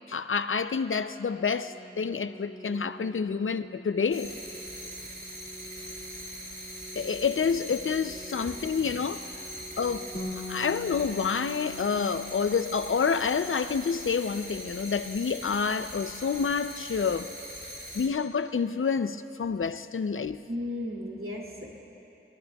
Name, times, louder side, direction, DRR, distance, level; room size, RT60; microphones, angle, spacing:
voice 1, 0.1-4.3 7.0-9.3 9.8-10.1 10.4-17.3 17.9-20.4, left 5 dB, 75° left, 0.5 m, -28 dB
Organ, 1.4-12.4, right 1 dB, 10° left, 4.0 m, -49 dB
sound 1, 4.1-18.1, equal, 45° right, 2.6 m, -42 dB
Bass guitar, 10.1-14.8 15.1-16.4, left 3 dB, 40° left, 1.8 m, -44 dB
voice 2, 20.5-21.8, left 1 dB, 75° right, 2.7 m, -35 dB
24.0 x 22.5 x 2.3 m
wide cardioid pair, 50°, 21 cm